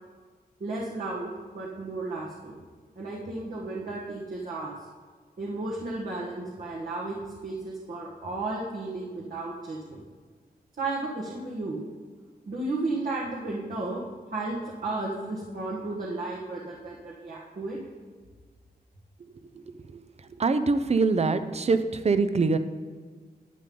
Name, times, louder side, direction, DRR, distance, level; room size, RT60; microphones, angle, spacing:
voice 1, 0.6-2.6 2.9-4.7 5.4-10.0 10.8-11.8 12.5-17.8, right 2 dB, 60° right, -4 dB, 1.5 m, -33 dB
voice 2, 20.4-22.6, right 4 dB, 40° right, 11 dB, 0.6 m, -23 dB
11.0 x 9.3 x 3.8 m, 1.5 s
wide cardioid pair, 125°, 16 cm